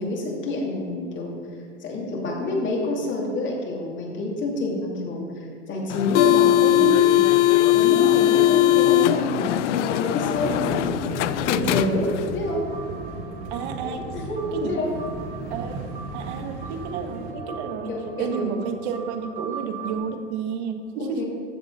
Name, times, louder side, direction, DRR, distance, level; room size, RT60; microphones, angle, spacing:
voice 1, 0.0-1.4 1.8-7.2 7.7-11.0 11.4-12.6 13.8-14.9 17.9-18.5 21.0-21.2, left 2 dB, 30° left, -2 dB, 2.6 m, -28 dB
sound 1, 5.9-12.4, left 14 dB, 70° left, 0.5 m, -20 dB
voice 2, 6.6-7.1 13.5-14.0 14.5-14.8 15.5-15.8 16.1-21.2, right 6 dB, 60° right, 6 dB, 1.4 m, -30 dB
sound 2, 10.3-17.3, right 3 dB, 45° right, 1.7 m, -36 dB
sound 3, 12.4-20.0, right 4 dB, 20° right, 2.5 m, -41 dB
14.0 x 6.9 x 4.1 m, 2.4 s
hypercardioid pair, 120°, 37 cm